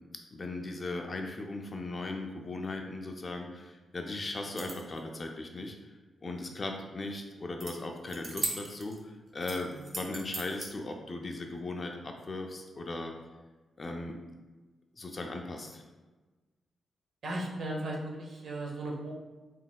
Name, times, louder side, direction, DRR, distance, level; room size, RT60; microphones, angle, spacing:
voice 1, 0.3-5.8 6.2-13.1 13.8-14.2 15.0-15.8, left 2 dB, 30° left, 3 dB, 0.4 m, -38 dB
sound 1, 4.4-5.0 7.6-7.7 8.1-9.0 9.4-10.7, right 2 dB, 35° right, 0.6 m, -38 dB
voice 2, 17.2-19.2, right 1 dB, 65° right, -2 dB, 0.8 m, -36 dB
4.0 x 3.8 x 2.2 m, 1.2 s
wide cardioid pair, 170°, 0 cm